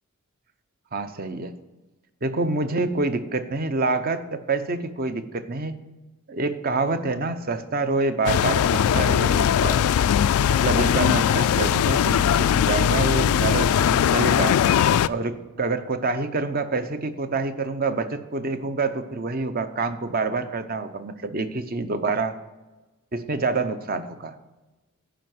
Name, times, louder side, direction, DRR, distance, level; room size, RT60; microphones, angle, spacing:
voice 1, 0.9-1.6 2.2-5.8 6.3-9.8 10.6-14.6 15.1-22.4 23.1-24.3, right 3 dB, 40° right, 10 dB, 0.7 m, -27 dB
sound 1, 8.3-15.1, left 9 dB, 80° left, 0.3 m, -20 dB
10.0 x 5.6 x 7.7 m, 1.1 s
head